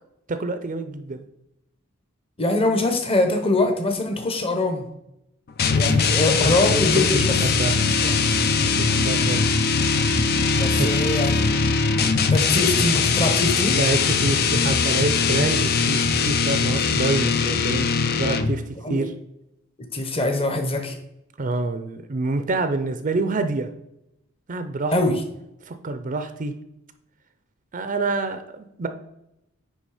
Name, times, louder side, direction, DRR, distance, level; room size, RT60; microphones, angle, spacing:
voice 1, 0.3-1.2 5.8-7.8 8.8-9.5 10.8-11.0 11.4-11.5 13.7-17.9 18.2-18.6 18.9-19.1 21.4-23.7 24.5-25.2 25.7-26.5 27.7-28.9, right 3 dB, 40° right, 9 dB, 0.5 m, -27 dB
voice 2, 2.4-4.8 5.7-7.3 8.0-8.2 10.5-11.6 12.3-13.8 18.8-19.1 19.9-20.9 24.9-25.1, left 2 dB, 30° left, 4 dB, 1.1 m, -23 dB
sound 1, 5.6-18.7, left 5 dB, 50° left, 0.6 m, -21 dB
9.6 x 3.4 x 4.9 m, 0.83 s
head